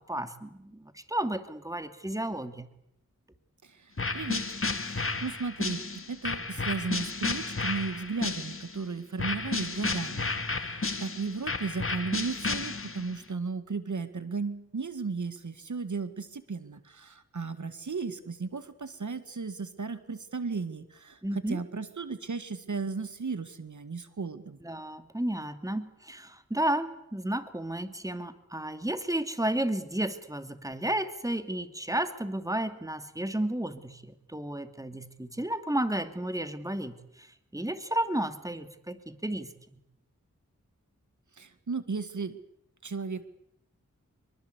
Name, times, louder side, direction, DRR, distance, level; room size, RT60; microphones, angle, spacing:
voice 1, 0.1-2.7 21.2-21.6 24.6-37.3 37.5-39.5, right 1 dB, 10° right, 9 dB, 2.6 m, -32 dB
voice 2, 3.6-4.4 4.8-24.6 41.4-42.4 42.8-43.3, right 4 dB, 70° right, 11 dB, 2.0 m, -35 dB
sound 1, 4.0-8.8 9.2-13.2, left 3 dB, 45° left, 2.5 m, -32 dB
26.0 x 23.5 x 8.3 m, 0.77 s
wide cardioid pair, 55°, 31 cm